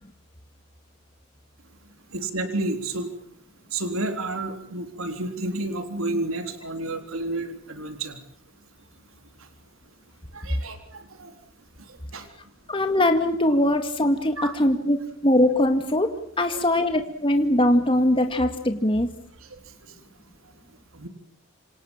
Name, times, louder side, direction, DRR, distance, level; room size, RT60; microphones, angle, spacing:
voice 1, 2.1-3.1 3.7-8.2 10.3-11.4 12.1-12.3 14.4-14.6 16.5-16.6 19.5-19.6 20.9-21.1, right 2 dB, 85° right, 6 dB, 3.9 m, -30 dB
voice 2, 12.7-15.0 15.2-19.1, left 1 dB, 25° left, 6 dB, 2.0 m, -21 dB
27.5 x 27.5 x 7.3 m, 0.66 s
head